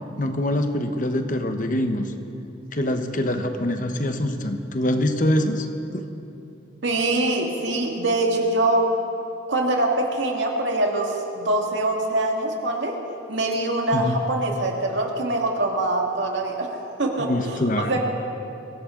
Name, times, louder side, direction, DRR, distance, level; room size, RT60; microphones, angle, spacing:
voice 1, 0.2-2.1 2.7-5.7 5.9-6.0 13.9-14.2 17.2-18.0, left 1 dB, 45° left, 6 dB, 1.0 m, -24 dB
voice 2, 6.8-8.8 9.5-12.9 13.3-17.6 17.9-18.0, right 2 dB, 75° right, 0 dB, 2.1 m, -24 dB
23.0 x 16.5 x 3.8 m, 2.7 s
head